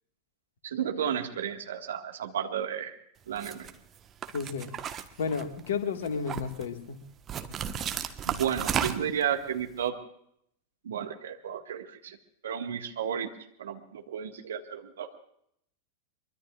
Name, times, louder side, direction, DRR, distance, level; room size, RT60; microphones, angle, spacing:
voice 1, 0.6-3.0 3.3-3.7 8.2-10.0 10.8-12.2 12.4-13.3 13.6-15.2, right 8 dB, 65° right, 5 dB, 1.8 m, -32 dB
sound 1, 3.4-3.7 4.2-5.7 6.0-6.7 7.3-9.2, right 8 dB, 25° right, 1.3 m, -33 dB
voice 2, 4.3-4.7 5.2-7.0, left 5 dB, 60° left, 7 dB, 1.9 m, -32 dB
23.5 x 23.5 x 2.5 m, 0.71 s
figure-of-eight pair, 90°, 0 cm